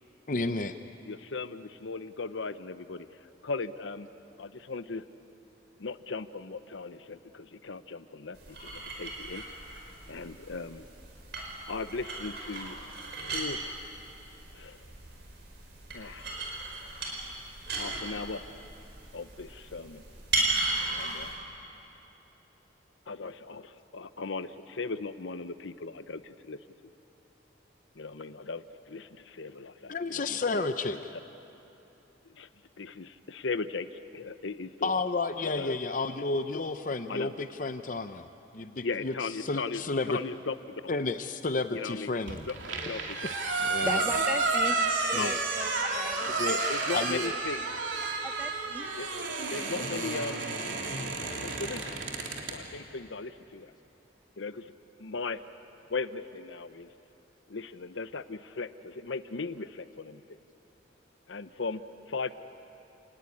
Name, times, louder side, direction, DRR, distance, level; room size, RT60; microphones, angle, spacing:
voice 1, 0.3-0.7 29.9-31.0 34.8-38.3 38.5-40.2 40.9-41.2 41.4-42.4 43.6-43.9 45.1-45.4 46.4-46.6 46.9-47.2, left 3 dB, 45° left, 9 dB, 0.6 m, -31 dB
voice 2, 1.1-3.1 3.4-4.1 4.4-5.1 5.8-9.4 10.1-10.9 11.7-12.9 13.3-13.6 14.5-14.8 15.9-16.3 17.7-18.4 19.1-20.0 20.9-21.4 23.1-26.6 28.0-31.0 32.3-32.5 32.8-35.0 35.4-35.8 36.5-36.7 37.1-37.3 38.8-40.6 41.7-42.1 42.5-42.6 42.9-43.3 43.9-44.0 45.1-45.3 46.7-47.6 49.0-49.1 49.4-50.4 51.4-52.0 52.5-53.7 54.4-54.7 55.0-55.4 55.9-56.9 57.5-60.2 61.3-61.8 62.1-62.3, left 4 dB, 80° left, 12 dB, 0.8 m, -37 dB
sound 1, 8.3-21.3, right 2 dB, 60° right, 5.0 m, -36 dB
sound 2, 42.3-52.6, right 3 dB, 85° right, 3.3 m, -31 dB
voice 3, 43.8-44.7 45.1-47.3 48.2-48.9, right 1 dB, 10° right, 5 dB, 1.4 m, -38 dB
29.5 x 19.0 x 9.8 m, 3.0 s
head